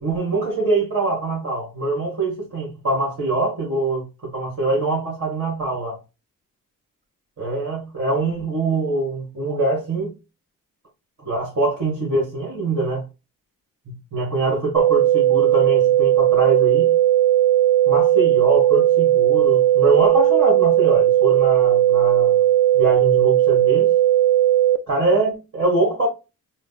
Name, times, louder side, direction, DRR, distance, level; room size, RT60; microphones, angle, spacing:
voice 1, 0.0-6.0 7.4-10.1 11.2-13.0 13.9-16.9 17.9-22.4 22.7-23.9 24.9-26.1, right 3 dB, 45° right, 2.3 m, -23 dB
sound 1, 14.8-24.8, right 13 dB, 75° right, 0.6 m, -16 dB
3.9 x 2.3 x 4.0 m
cardioid pair, 100°, 31 cm